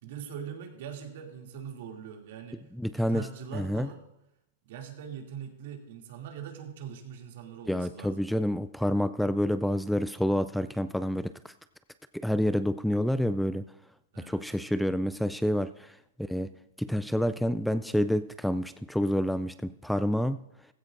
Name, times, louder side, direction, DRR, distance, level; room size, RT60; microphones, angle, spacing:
voice 1, 0.0-2.6 2.9-4.0 4.6-8.2 14.1-14.5, right 8 dB, 65° right, 2 dB, 2.6 m, -42 dB
voice 2, 2.8-3.3 3.5-3.9 7.7-11.5 12.1-13.7 14.2-16.5 16.8-20.4, equal, ahead, 12 dB, 0.3 m, -28 dB
16.0 x 15.0 x 2.6 m, 0.89 s
hypercardioid pair, 135°, 0 cm